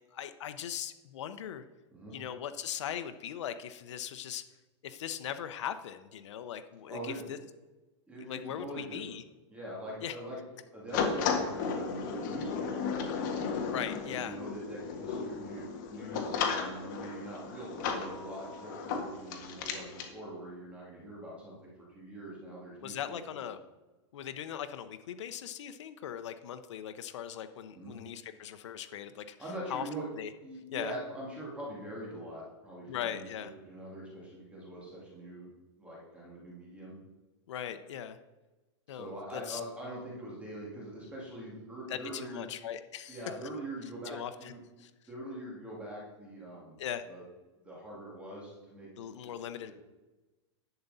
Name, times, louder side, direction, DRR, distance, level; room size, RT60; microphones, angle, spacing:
voice 1, 0.1-1.6 2.1-4.4 4.8-7.0 7.3-7.4 8.2-9.2 10.0-10.2 13.7-14.4 22.8-23.6 24.1-29.4 29.7-29.8 30.2-30.3 30.7-30.9 32.9-33.5 37.5-38.2 38.9-39.6 41.9-43.5 44.1-44.3 44.8-44.9 46.8-47.1 49.0-49.7, left 9 dB, 75° left, 9 dB, 0.8 m, -39 dB
voice 2, 6.9-7.3 8.1-9.0 9.5-10.4 10.7-13.0 14.2-23.5 27.7-28.0 29.4-30.0 30.4-33.3 33.6-35.5 35.8-37.0 38.9-42.5 43.1-44.6 45.1-46.8 47.1-47.2 47.6-48.9 49.2-49.3 49.6-49.7, right 1 dB, 10° right, -5 dB, 2.3 m, -43 dB
sound 1, 10.9-20.1, left 5 dB, 45° left, 1.6 m, -34 dB
11.0 x 7.9 x 4.1 m, 1.1 s
supercardioid pair, 165°, 15 cm